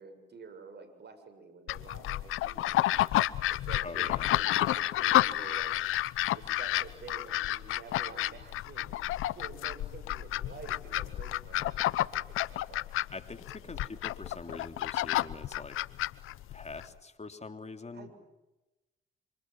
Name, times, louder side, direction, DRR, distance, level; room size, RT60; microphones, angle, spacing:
voice 1, 0.0-2.8 3.5-5.8 6.3-12.9 13.6-13.9 17.9-18.1, right 4 dB, 55° right, 8 dB, 7.1 m, -49 dB
sound 1, 1.7-16.9, left 14 dB, 80° left, 0.9 m, -30 dB
voice 2, 3.8-4.3 13.1-15.8 16.5-18.1, left 3 dB, 30° left, 8 dB, 3.4 m, -44 dB
27.0 x 26.5 x 7.7 m, 1.0 s
supercardioid pair, 60°, 21 cm